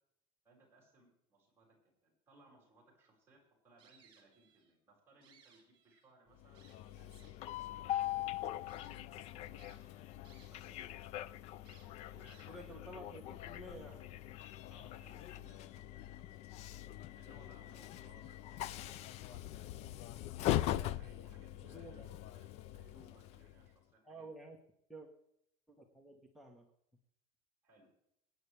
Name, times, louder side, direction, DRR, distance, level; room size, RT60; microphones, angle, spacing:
voice 1, 0.4-1.7 2.0-7.4 8.4-10.0 10.5-10.8 12.0-12.6 14.7-16.5 17.1-19.4 20.5-22.5 22.7-24.3 27.6-27.9, right 2 dB, 15° right, -4 dB, 6.0 m, -66 dB
sound 1, 3.8-4.7 5.1-6.1 6.5-7.5 8.1-8.2 8.7-8.9 9.6-10.7 11.0-11.1 11.6-12.7, right 7 dB, 40° right, 4.3 m, -66 dB
Train, 6.4-23.7, left 13 dB, 50° left, 0.5 m, -42 dB
voice 2, 12.5-14.1 21.6-22.1 24.0-24.6 24.9-25.1 25.7-26.7, right 1 dB, ahead, -2 dB, 1.2 m, -51 dB
24.5 x 9.7 x 3.4 m, 0.75 s
cardioid pair, 165°, 14 cm